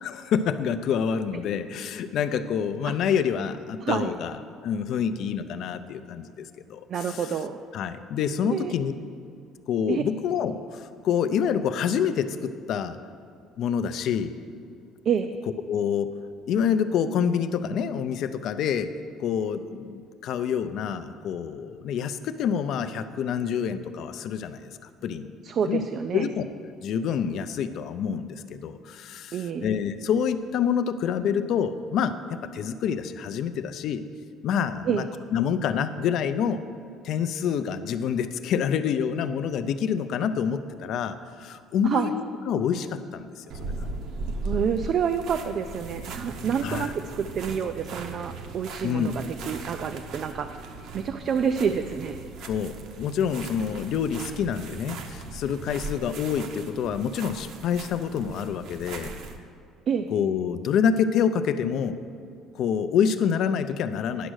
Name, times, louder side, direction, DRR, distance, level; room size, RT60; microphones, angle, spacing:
voice 1, 0.0-4.4 4.6-6.8 7.1-7.2 7.7-8.9 9.7-13.0 13.6-14.3 15.7-16.1 16.5-18.9 19.2-24.7 25.0-25.3 25.6-25.8 26.1-26.4 26.8-34.0 34.4-35.0 35.3-36.6 37.0-43.9 46.6-46.9 48.8-49.3 52.5-59.1 60.1-62.0 62.5-64.3, left 7 dB, 50° left, 11 dB, 0.4 m, -27 dB
voice 2, 3.8-4.1 6.9-7.6 8.5-8.7 9.9-10.0 15.1-15.3 25.4-26.3 29.3-29.7 34.9-35.1 41.8-42.1 44.4-52.2 59.9-60.1, right 7 dB, 40° right, 8 dB, 0.3 m, -28 dB
sound 1, 43.5-59.4, right 3 dB, 55° right, 0.8 m, -38 dB
10.0 x 6.2 x 6.3 m, 2.4 s
cardioid pair, 170°, 0 cm